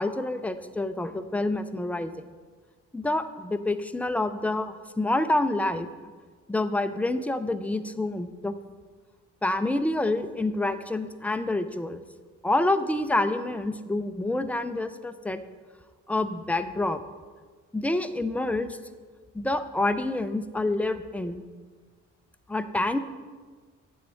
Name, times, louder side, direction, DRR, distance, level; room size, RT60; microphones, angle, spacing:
voice 1, 0.0-2.1 2.9-5.9 6.5-8.6 9.4-12.0 12.4-15.4 16.1-17.0 17.7-18.8 19.3-21.4 22.5-23.0, left 2 dB, 5° left, 10 dB, 0.4 m, -27 dB
9.5 x 7.3 x 4.5 m, 1.5 s
cardioid pair, 90°, 30 cm